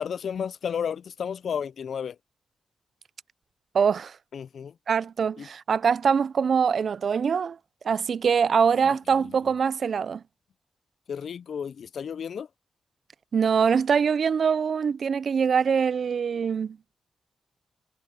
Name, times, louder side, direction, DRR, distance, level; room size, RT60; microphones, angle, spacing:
voice 1, 0.0-2.2 4.3-4.7 5.4-5.5 11.1-12.5, left 7 dB, 75° left, 0.3 m, -32 dB
voice 2, 3.7-4.2 4.9-7.6 7.8-10.2 13.3-16.8, right 6 dB, 60° right, 0.3 m, -23 dB
wide cardioid pair, 125°, 0 cm